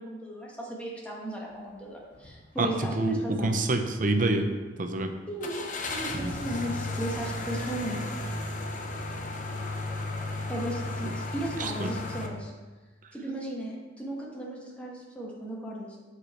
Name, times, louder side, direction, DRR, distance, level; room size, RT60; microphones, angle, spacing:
voice 1, 0.0-3.6 5.3-8.0 10.5-12.5 13.1-16.0, right 1 dB, 5° left, -4 dB, 1.5 m, -36 dB
sound 1, 2.1-2.4 2.8-2.9 5.4-12.3, left 2 dB, 40° left, 0.7 m, -34 dB
voice 2, 2.6-4.5 4.8-5.1 6.2-6.3 11.6-11.9, right 2 dB, 45° right, 5 dB, 0.7 m, -27 dB
7.6 x 4.9 x 4.4 m, 1.3 s
head